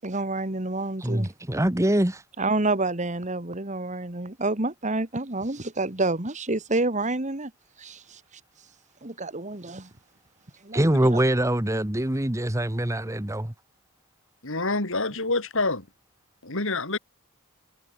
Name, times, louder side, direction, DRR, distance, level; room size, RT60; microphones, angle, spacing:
voice 1, 0.0-1.3 2.4-7.5 7.8-8.2 9.0-9.9 10.6-10.8 11.1-11.2, right 2 dB, 35° right, 2.1 m, -28 dB
voice 2, 1.0-2.2 10.7-13.5, right 1 dB, 15° right, 1.2 m, -24 dB
voice 3, 14.4-15.9 16.4-17.0, left 3 dB, 60° left, 4.5 m, -27 dB
head